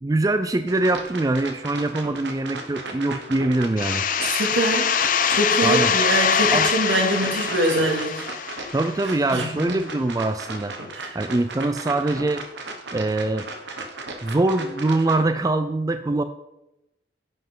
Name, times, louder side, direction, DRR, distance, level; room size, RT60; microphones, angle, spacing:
voice 1, 0.0-4.0 5.6-5.9 6.5-6.7 8.7-10.8 11.1-12.4 12.9-13.5 14.2-16.2, right 2 dB, 20° right, 9 dB, 0.3 m, -23 dB
sound 1, 0.7-15.3, right 3 dB, 65° right, 1.2 m, -36 dB
sound 2, 3.8-9.3, left 7 dB, 45° left, 0.5 m, -23 dB
voice 2, 4.2-5.0 5.3-8.3 9.3-9.8 10.9-11.2, right 2 dB, 80° right, 0 dB, 2.3 m, -24 dB
10.5 x 7.8 x 3.8 m, 0.89 s
head